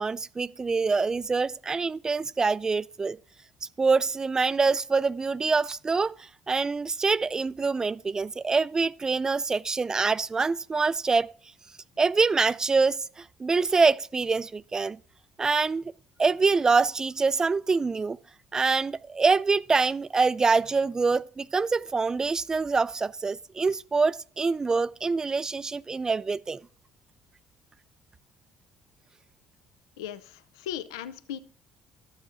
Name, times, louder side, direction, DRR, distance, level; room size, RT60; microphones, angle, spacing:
voice 1, 0.0-3.2 3.8-11.3 12.0-15.0 15.4-15.9 16.2-18.2 18.5-26.6, right 4 dB, 25° right, 0.3 m, -25 dB
voice 2, 30.0-31.4, left 10 dB, 85° left, 0.4 m, -37 dB
12.0 x 7.1 x 3.7 m
hypercardioid pair, 60°, 2 cm